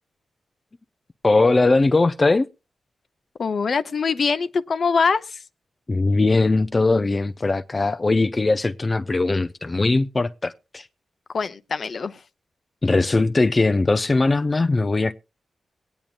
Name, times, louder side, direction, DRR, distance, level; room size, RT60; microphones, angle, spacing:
voice 1, 1.2-2.5 5.9-10.9 12.8-15.1, left 3 dB, 35° left, 0.5 m, -20 dB
voice 2, 3.4-5.4 11.3-12.2, left 5 dB, 65° left, 0.8 m, -23 dB
22.0 x 8.8 x 2.4 m
cardioid pair, 50°, 0 cm